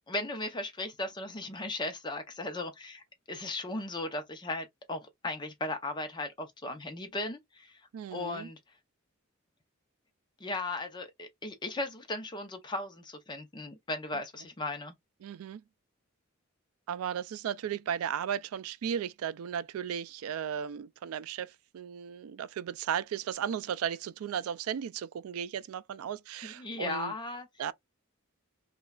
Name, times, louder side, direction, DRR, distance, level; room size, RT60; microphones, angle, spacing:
voice 1, 0.1-3.0 3.3-7.8 8.1-8.6 10.4-14.9 26.4-27.5, left 2 dB, 20° left, 0.6 m, -37 dB
voice 2, 7.9-8.5 15.2-15.6 16.9-27.1 27.6-27.7, right 8 dB, 90° right, 0.3 m, -35 dB
3.0 x 2.3 x 2.3 m
head